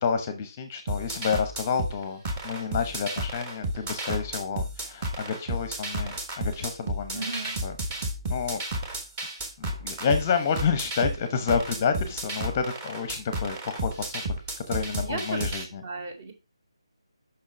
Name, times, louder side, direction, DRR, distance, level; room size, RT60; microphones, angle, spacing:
voice 1, 0.0-8.6 9.6-14.2 14.7-15.8, left 6 dB, 20° left, 9 dB, 0.8 m, -29 dB
sound 1, 0.9-15.6, right 1 dB, 15° right, 1.2 m, -32 dB
voice 2, 7.1-7.6 15.0-16.3, right 3 dB, 35° right, 4 dB, 2.2 m, -35 dB
6.2 x 5.8 x 5.1 m, 0.30 s
figure-of-eight pair, 155°, 3 cm